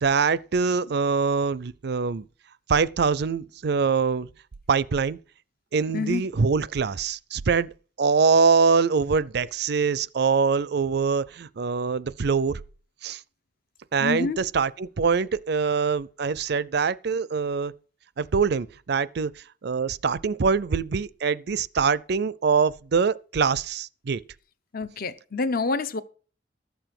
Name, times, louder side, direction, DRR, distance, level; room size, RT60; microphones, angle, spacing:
voice 1, 0.0-2.2 2.7-4.3 4.7-5.2 5.7-7.7 8.0-12.6 13.0-13.2 13.9-17.7 18.2-24.2, right 5 dB, 60° right, 0.5 m, -24 dB
voice 2, 14.0-14.4 24.7-26.0, left 3 dB, 55° left, 0.7 m, -27 dB
12.5 x 6.9 x 5.9 m
head